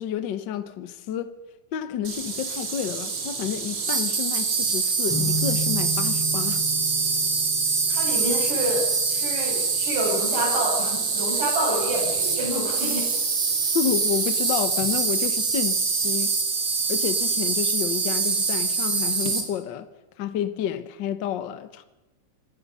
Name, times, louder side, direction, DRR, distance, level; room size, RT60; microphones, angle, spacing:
voice 1, 0.0-1.3 1.7-6.6 13.7-16.3 16.9-19.9 20.2-21.8, left 9 dB, 85° left, 1.0 m, -30 dB
Insect, 2.0-19.4, right 4 dB, 40° right, 3.1 m, -25 dB
sound 1, 5.1-12.3, equal, 5° left, 1.9 m, -35 dB
voice 2, 7.9-8.8 9.1-13.1, equal, 75° right, 8.8 m, -28 dB
26.5 x 18.0 x 5.5 m
omnidirectional pair, 3.7 m